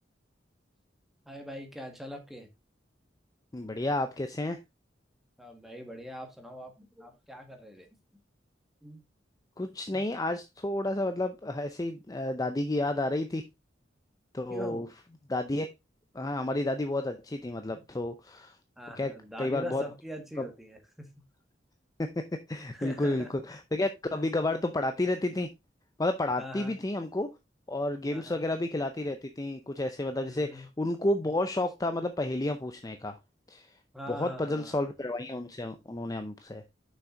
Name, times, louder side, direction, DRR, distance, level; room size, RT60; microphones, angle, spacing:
voice 1, 1.2-2.5 5.4-7.9 8.8-9.0 14.5-14.9 17.7-17.8 18.8-21.1 22.7-23.3 26.4-26.7 28.1-28.4 30.2-30.7 33.9-34.9, equal, ahead, 1.7 m, -42 dB
voice 2, 3.5-4.6 9.6-13.4 14.3-14.9 15.3-15.7 16.1-18.6 19.0-19.1 19.4-19.8 20.4-20.5 22.0-25.5 26.0-27.3 27.7-33.2 33.5-33.7 34.1-36.6, left 2 dB, 20° left, 0.5 m, -31 dB
6.5 x 6.0 x 3.7 m
head